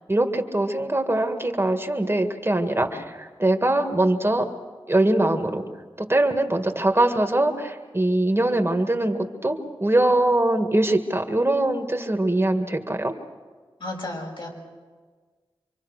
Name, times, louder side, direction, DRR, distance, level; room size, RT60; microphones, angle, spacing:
voice 1, 0.1-4.5 4.9-5.6 6.0-13.1, right 1 dB, 25° right, 5 dB, 1.9 m, -22 dB
voice 2, 13.8-14.5, left 2 dB, 65° left, -1 dB, 6.4 m, -33 dB
26.5 x 24.0 x 6.5 m, 1.5 s
cardioid pair, 50°, 9 cm